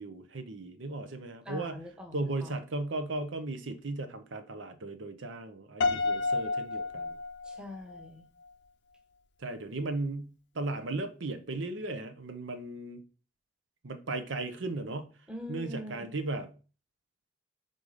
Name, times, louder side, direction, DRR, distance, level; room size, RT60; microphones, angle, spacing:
voice 1, 0.0-1.8 2.1-7.2 9.4-13.0 13.8-15.1 15.5-16.5, right 2 dB, 80° right, 0.7 m, -36 dB
voice 2, 1.4-2.5 7.4-8.3 15.3-16.0, left 1 dB, 5° right, 1.0 m, -43 dB
Piano, 5.8-8.0, left 3 dB, 65° left, 0.5 m, -30 dB
5.4 x 3.8 x 4.9 m
head